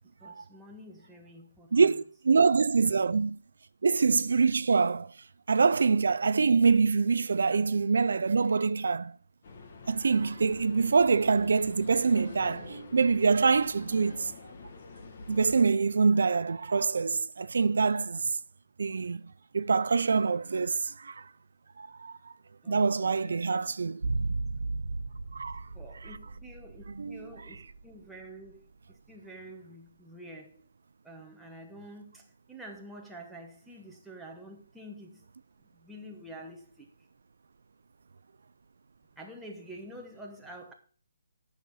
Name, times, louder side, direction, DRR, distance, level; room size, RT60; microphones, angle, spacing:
voice 1, 0.2-2.0 22.6-23.4 25.7-30.6 31.0-35.3 35.6-36.9 39.2-40.7, right 1 dB, ahead, 1.0 m, -48 dB
voice 2, 1.7-3.4 3.8-5.1 5.5-9.1 9.9-14.3 15.3-18.3 18.8-19.2 19.5-21.3 21.8-22.3 22.7-24.0 25.3-25.7 27.0-27.2, right 4 dB, 65° right, 0.4 m, -25 dB
sound 1, 9.4-15.6, left 4 dB, 40° left, 1.4 m, -47 dB
sound 2, 24.0-28.2 28.5-28.6, right 3 dB, 85° right, 0.9 m, -35 dB
9.2 x 6.4 x 5.6 m
hypercardioid pair, 175°, 0 cm